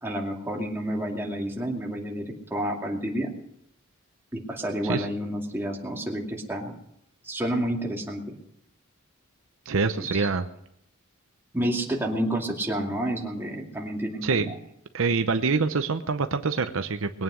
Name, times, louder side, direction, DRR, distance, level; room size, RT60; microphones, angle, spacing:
voice 1, 0.0-2.2 2.5-3.3 4.3-6.7 7.2-8.4 10.0-10.3 11.5-14.5, right 1 dB, 10° right, -1 dB, 2.4 m, -29 dB
voice 2, 9.7-10.5 14.2-14.5 14.9-17.2, right 4 dB, 70° right, 8 dB, 0.8 m, -25 dB
21.0 x 9.2 x 6.3 m, 0.76 s
head